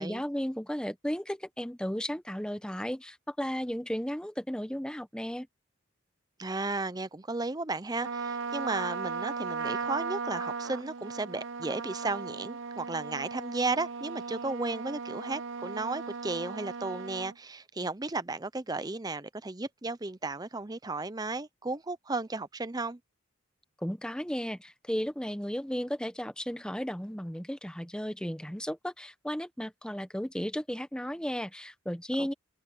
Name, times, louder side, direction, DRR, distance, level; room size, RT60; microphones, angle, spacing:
voice 1, 0.0-5.5 23.8-32.3, equal, 5° left, 0.9 m, -34 dB
voice 2, 6.4-23.0 32.2-32.3, right 3 dB, 20° right, 0.6 m, -34 dB
Trumpet, 8.0-17.3, right 5 dB, 65° right, 0.7 m, -37 dB
open air
head